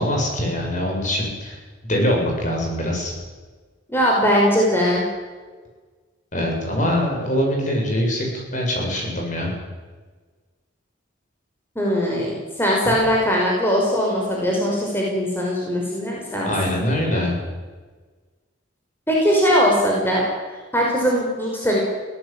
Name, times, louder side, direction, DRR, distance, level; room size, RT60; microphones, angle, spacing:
voice 1, 0.0-1.6 1.8-3.1 6.3-9.5 16.5-17.4, equal, 40° left, 0 dB, 7.7 m, -23 dB
voice 2, 3.9-5.0 11.8-16.5 19.1-20.2 20.7-21.8, equal, 10° left, -3 dB, 5.5 m, -20 dB
23.5 x 18.0 x 9.1 m, 1.4 s
head